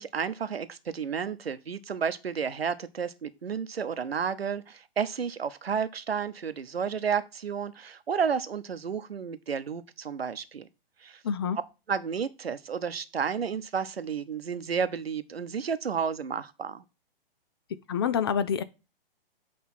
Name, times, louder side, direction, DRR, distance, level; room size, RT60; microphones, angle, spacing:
voice 1, 0.0-10.7 11.0-11.2 11.9-16.8, right 6 dB, 90° right, 0.9 m, -31 dB
voice 2, 11.2-11.6 17.9-18.6, left 7 dB, 25° left, 0.4 m, -27 dB
8.7 x 3.4 x 5.6 m
hypercardioid pair, 135°, 30 cm